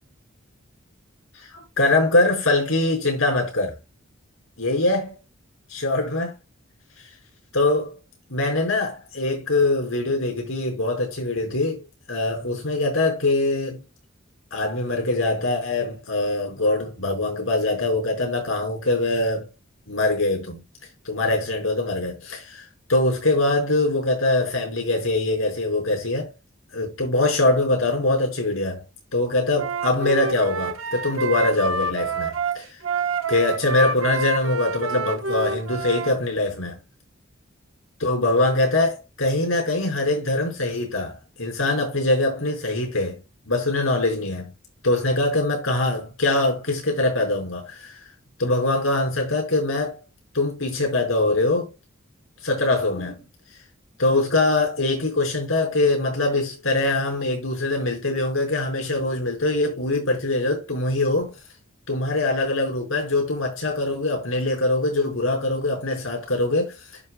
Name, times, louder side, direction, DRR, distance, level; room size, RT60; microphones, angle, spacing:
voice 1, 1.3-3.8 4.6-5.2 5.7-6.4 7.5-8.0 8.3-13.8 14.5-19.5 19.9-20.6 21.1-26.3 26.7-28.8 29.1-32.8 33.3-36.8 38.0-44.5 44.8-48.1 48.4-50.0 50.3-51.7 52.4-53.3 54.0-61.4 61.9-67.0, left 2 dB, 90° left, 5.4 m, -23 dB
Wind instrument woodwind instrument, 29.5-36.1, right 3 dB, 85° right, 1.2 m, -27 dB
11.5 x 7.0 x 2.3 m
head